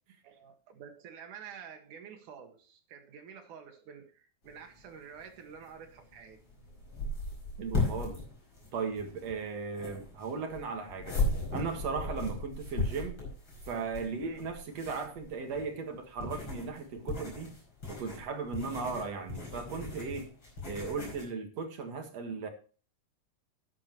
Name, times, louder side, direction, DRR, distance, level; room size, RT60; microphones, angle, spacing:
voice 1, 0.2-6.4 12.0-12.2 14.2-14.4, right 7 dB, 80° right, 4 dB, 3.2 m, -49 dB
sound 1, 4.5-21.2, left 2 dB, 40° left, 5.8 m, -37 dB
voice 2, 7.6-8.2 8.7-11.2 11.5-13.2 13.7-17.5 17.9-20.3 20.7-22.5, right 5 dB, 60° right, 5 dB, 2.7 m, -37 dB
13.0 x 9.8 x 3.0 m, 0.37 s
omnidirectional pair, 3.5 m